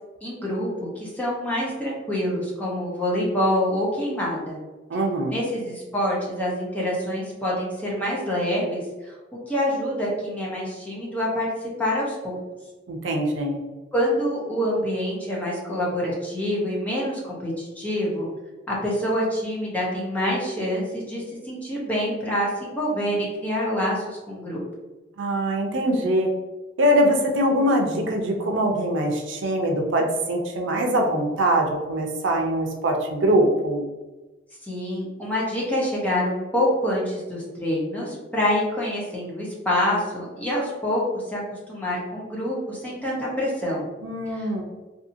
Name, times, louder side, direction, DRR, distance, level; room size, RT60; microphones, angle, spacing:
voice 1, 0.2-4.6 5.3-9.1 9.5-11.5 11.8-12.4 13.9-18.3 18.7-24.6 34.6-43.9 44.4-44.5, left 1 dB, 10° left, -5 dB, 0.8 m, -26 dB
voice 2, 4.9-5.4 12.9-13.6 25.2-26.3 26.8-33.9 44.0-44.6, right 1 dB, 80° right, 2 dB, 0.5 m, -23 dB
2.7 x 2.6 x 2.6 m, 1.2 s
head